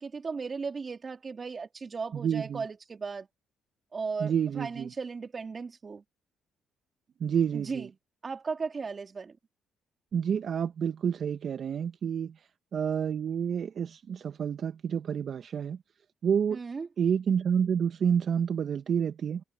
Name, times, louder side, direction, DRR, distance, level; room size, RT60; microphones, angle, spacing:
voice 1, 0.0-3.3 3.9-6.0 7.5-7.9 8.2-9.4 16.5-16.9, right 4 dB, 35° right, 3.5 m, -36 dB
voice 2, 2.1-2.6 4.2-4.9 7.2-7.9 10.1-12.3 12.7-15.8 16.2-16.6 17.0-19.4, right 7 dB, 55° right, 0.9 m, -29 dB
cardioid pair, 80°, 0 cm